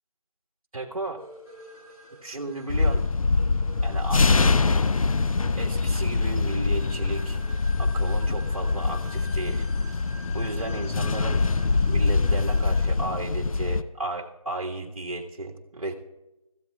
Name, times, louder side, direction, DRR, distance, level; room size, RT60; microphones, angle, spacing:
voice 1, 0.7-1.2 2.2-3.1 3.8-4.4 5.6-7.4 7.8-9.7 10.3-11.4 11.9-15.9, right 2 dB, 65° right, 2 dB, 1.6 m, -34 dB
sound 1, 1.2-13.1, left 1 dB, 10° left, 1.7 m, -47 dB
sound 2, 2.7-13.8, left 3 dB, 65° left, 0.5 m, -24 dB
23.0 x 14.5 x 2.4 m, 0.97 s
figure-of-eight pair, 170°, 19 cm